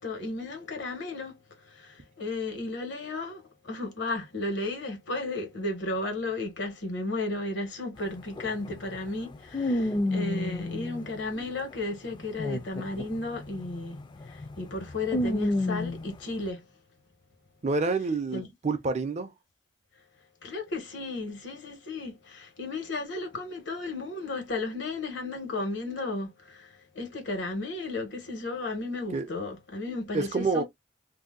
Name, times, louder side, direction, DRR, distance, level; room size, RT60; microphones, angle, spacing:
voice 1, 0.0-16.7 18.3-18.5 20.4-30.6, left 2 dB, 80° left, 1.3 m, -34 dB
sound 1, 8.0-8.1 8.4-11.6 12.1-16.2, left 1 dB, 25° left, 0.4 m, -31 dB
voice 2, 17.6-19.3 29.1-29.3 30.1-30.6, right 3 dB, 40° right, 0.4 m, -28 dB
2.7 x 2.1 x 3.6 m
head